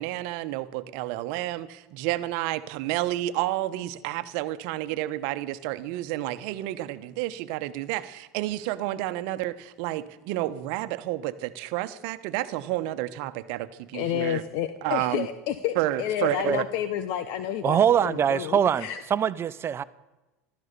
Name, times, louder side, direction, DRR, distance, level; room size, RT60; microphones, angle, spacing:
voice 1, 0.0-14.4 14.8-15.3 15.7-16.6, right 15 dB, 65° right, 12 dB, 1.1 m, -30 dB
voice 2, 13.9-19.0, left 11 dB, 60° left, 11 dB, 1.1 m, -30 dB
voice 3, 17.6-19.8, right 8 dB, 30° right, 15 dB, 0.8 m, -23 dB
15.0 x 13.0 x 6.8 m, 1.1 s
hypercardioid pair, 95°, 8 cm